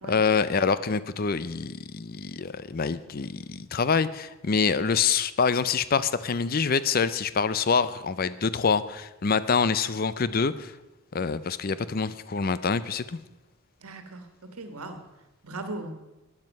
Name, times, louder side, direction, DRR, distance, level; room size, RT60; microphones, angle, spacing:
voice 1, 0.1-10.7 11.1-13.2, left 5 dB, 45° left, 15 dB, 0.5 m, -26 dB
voice 2, 13.8-15.0 15.4-15.9, right 2 dB, 90° right, 7 dB, 1.5 m, -38 dB
12.0 x 9.7 x 5.4 m, 1.0 s
head